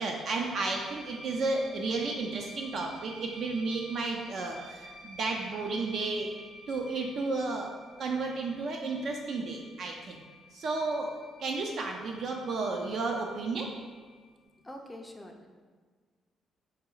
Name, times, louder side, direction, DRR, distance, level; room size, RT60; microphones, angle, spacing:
voice 1, 0.0-6.3 6.7-7.7 8.0-10.2 10.5-11.1 11.4-13.7, right 3 dB, 55° right, 1 dB, 0.4 m, -32 dB
sound 1, 0.7-14.4, right 1 dB, 70° right, 1.3 m, -51 dB
voice 2, 14.6-15.5, left 1 dB, 10° left, 2 dB, 0.4 m, -45 dB
4.1 x 2.9 x 3.8 m, 1.5 s
cardioid pair, 145°, 0 cm